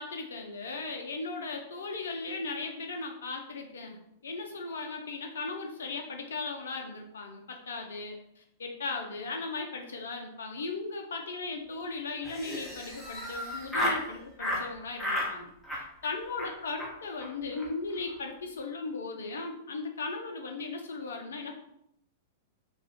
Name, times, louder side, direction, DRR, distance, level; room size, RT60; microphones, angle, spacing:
voice 1, 0.0-15.5 16.0-21.6, left 3 dB, 65° left, 3 dB, 0.5 m, -37 dB
Laughter, 12.2-14.0 14.4-14.6 15.0-15.3 15.6-16.1 16.4-16.5 16.8-16.9 17.2-17.3 17.5-17.7 17.9-18.3, left 1 dB, 5° left, 0.8 m, -33 dB
2.5 x 2.3 x 3.4 m, 0.77 s
figure-of-eight pair, 100°, 0 cm